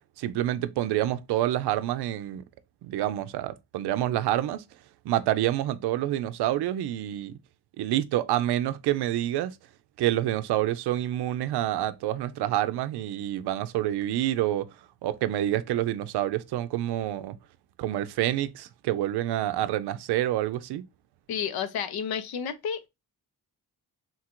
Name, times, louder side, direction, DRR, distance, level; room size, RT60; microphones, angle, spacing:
voice 1, 0.2-2.4 2.8-4.6 5.0-7.3 7.8-9.6 10.0-14.7 15.0-17.4 17.8-20.8, right 13 dB, 90° right, 0.5 m, -27 dB
voice 2, 21.3-22.9, left 7 dB, 70° left, 0.7 m, -31 dB
3.9 x 2.5 x 4.3 m
cardioid pair, 95°, 38 cm